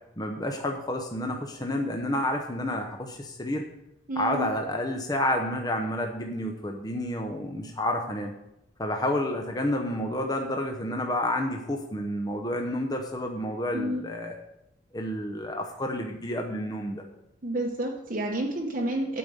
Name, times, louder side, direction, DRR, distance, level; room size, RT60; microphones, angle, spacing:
voice 1, 0.2-3.6 4.2-8.3 8.8-14.3 14.9-17.0, left 1 dB, 20° left, 3 dB, 0.8 m, -30 dB
voice 2, 4.1-4.5 13.7-14.0 17.4-19.2, right 1 dB, 40° right, 0 dB, 0.9 m, -30 dB
8.6 x 5.3 x 7.8 m, 0.87 s
head